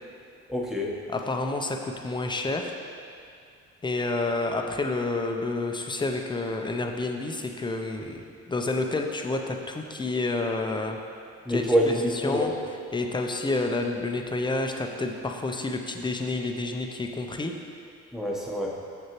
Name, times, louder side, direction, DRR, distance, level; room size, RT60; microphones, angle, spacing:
voice 1, 0.5-0.9 11.4-12.5 18.1-18.7, equal, ahead, -3 dB, 1.0 m, -26 dB
voice 2, 1.1-2.8 3.8-11.0 11.5-11.9 12.2-12.5 12.9-17.5, left 2 dB, 15° left, 3 dB, 0.5 m, -29 dB
6.8 x 6.4 x 3.0 m, 2.4 s
cardioid pair, 90°, 30 cm